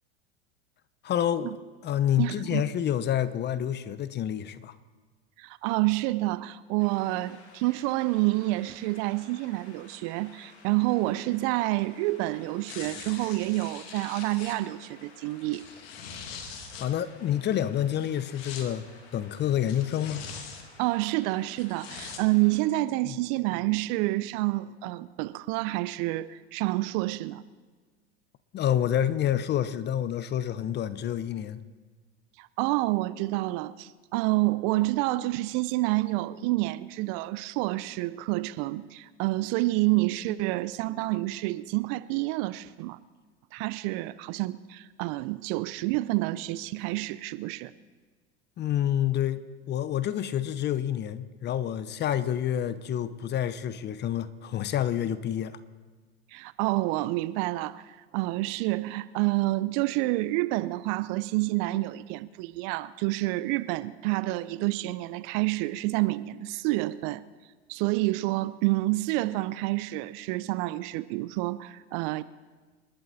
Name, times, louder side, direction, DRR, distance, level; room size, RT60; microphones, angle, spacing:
voice 1, 1.0-1.5 1.8-4.7 16.8-18.9 19.1-20.3 23.0-23.2 28.5-31.6 48.6-55.6, left 10 dB, 30° left, 0.9 m, -28 dB
voice 2, 2.2-2.7 5.4-15.6 20.8-27.4 32.4-43.0 43.5-47.7 56.3-67.2 67.7-72.2, right 19 dB, 50° right, 0.8 m, -28 dB
sound 1, 6.8-22.7, left 4 dB, 85° left, 2.8 m, -54 dB
sound 2, 12.7-14.6 15.4-16.9 18.0-18.7 19.7-20.7 21.6-22.2 22.8-22.9, left 6 dB, 65° left, 2.4 m, -42 dB
27.5 x 12.0 x 4.3 m
hypercardioid pair, 95°, 32 cm